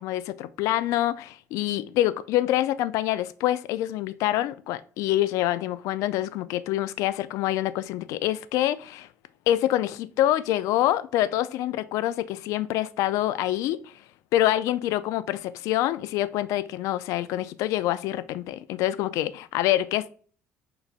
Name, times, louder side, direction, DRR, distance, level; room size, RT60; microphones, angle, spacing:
voice 1, 0.0-9.1 9.5-13.9 14.3-20.1, left 13 dB, 80° left, 0.3 m, -26 dB
4.6 x 3.9 x 2.4 m
cardioid pair, 130°, 5 cm